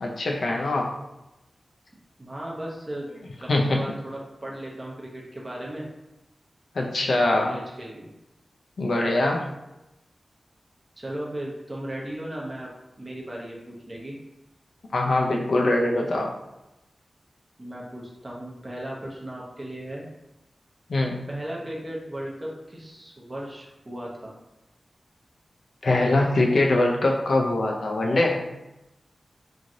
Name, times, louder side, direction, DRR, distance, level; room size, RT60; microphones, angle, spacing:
voice 1, 0.0-0.9 3.5-3.8 6.8-7.5 8.8-9.4 14.9-16.3 20.9-21.3 25.8-28.6, left 2 dB, 75° left, 0 dB, 0.3 m, -23 dB
voice 2, 2.2-3.1 3.4-5.9 7.2-8.1 11.0-12.7 13.0-14.1 17.6-20.1 21.3-24.3, right 1 dB, 30° right, -3 dB, 0.6 m, -36 dB
3.1 x 2.5 x 2.5 m, 0.95 s
wide cardioid pair, 80°, 0 cm